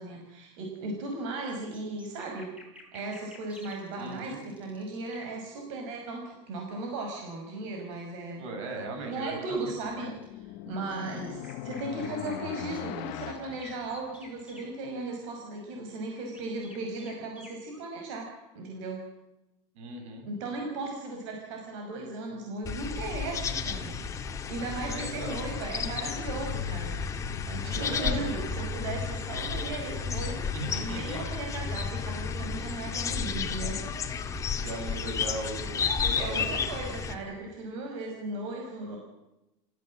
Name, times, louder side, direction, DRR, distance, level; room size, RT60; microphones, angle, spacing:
voice 1, 0.0-2.5 2.9-8.4 9.0-19.0 20.2-23.9 24.5-27.1 27.5-33.8 36.2-39.0, right 2 dB, 75° right, 1 dB, 5.8 m, -37 dB
sound 1, 1.5-5.4 9.3-10.3 10.7-14.7 16.1-17.9, left 2 dB, 10° right, 5.5 m, -52 dB
voice 2, 4.0-4.4 8.4-10.1 11.0-11.2 19.7-20.3 24.9-25.5 27.7-28.2 30.5-31.2 34.6-36.5, right 2 dB, 90° right, 4 dB, 7.9 m, -38 dB
sound 2, 9.6-14.6, left 14 dB, 55° left, 1.2 m, -41 dB
sound 3, 22.6-37.1, left 6 dB, 20° left, 2.0 m, -32 dB
28.5 x 16.5 x 7.6 m, 0.97 s
cardioid pair, 170°, 16 cm